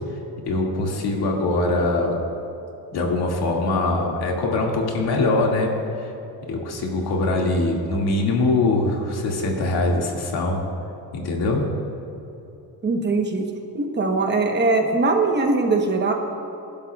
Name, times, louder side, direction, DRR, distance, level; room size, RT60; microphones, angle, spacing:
voice 1, 0.5-2.2 2.9-5.7 6.0-6.1 6.5-10.6 11.1-11.7, left 2 dB, 90° left, -1 dB, 2.2 m, -22 dB
voice 2, 12.8-13.5 13.7-16.1, right 3 dB, 30° right, 3 dB, 1.0 m, -21 dB
26.0 x 11.5 x 2.4 m, 3.0 s
cardioid pair, 175°, 37 cm